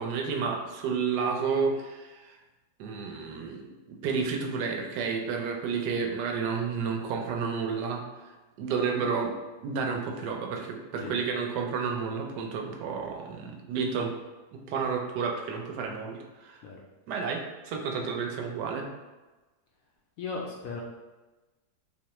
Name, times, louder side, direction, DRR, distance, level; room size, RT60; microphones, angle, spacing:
voice 1, 0.0-2.4 2.8-3.6 3.9-8.0 8.6-9.3 9.6-14.1 14.7-16.6 17.1-18.9, right 5 dB, 75° right, 2 dB, 1.1 m, -31 dB
voice 2, 20.2-20.8, left 4 dB, 70° left, -2 dB, 0.8 m, -36 dB
3.6 x 3.1 x 2.9 m, 1.2 s
omnidirectional pair, 1.9 m